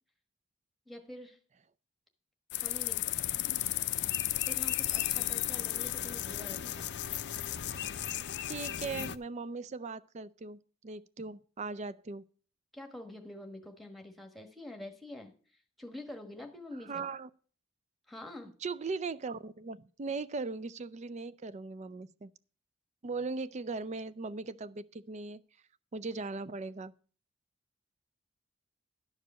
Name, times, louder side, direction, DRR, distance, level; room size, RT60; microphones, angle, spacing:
voice 1, 0.9-1.4 2.6-3.4 4.5-6.9 12.7-15.3 15.8-17.1 18.1-18.5, left 1 dB, ahead, 1.3 m, -46 dB
sound 1, 2.5-9.2, left 13 dB, 55° left, 0.5 m, -34 dB
voice 2, 8.5-12.3 16.9-17.3 18.6-22.3 23.0-25.4 25.9-26.9, right 4 dB, 35° right, 0.4 m, -39 dB
12.0 x 4.9 x 7.5 m
head